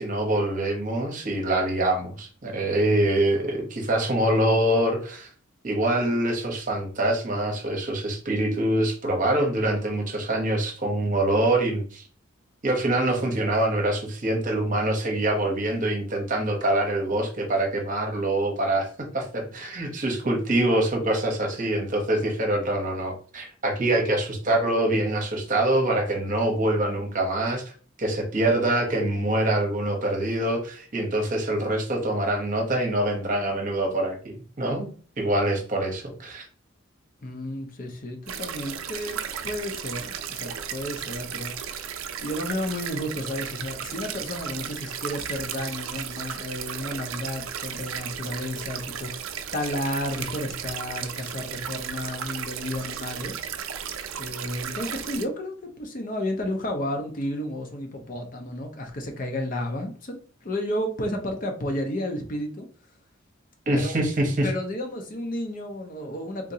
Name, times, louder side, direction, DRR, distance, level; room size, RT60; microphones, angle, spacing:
voice 1, 0.0-5.3 5.6-12.0 12.6-18.9 19.1-27.7 28.0-34.9 35.2-36.5 63.7-64.5, right 1 dB, 40° right, 2 dB, 0.9 m, -25 dB
voice 2, 37.2-41.8 42.2-53.4 54.2-62.7 63.7-64.0 64.4-66.5, left 1 dB, 45° left, 4 dB, 0.6 m, -32 dB
sound 1, 38.3-55.3, right 8 dB, 85° right, 0.4 m, -35 dB
3.7 x 2.8 x 2.7 m, 0.41 s
head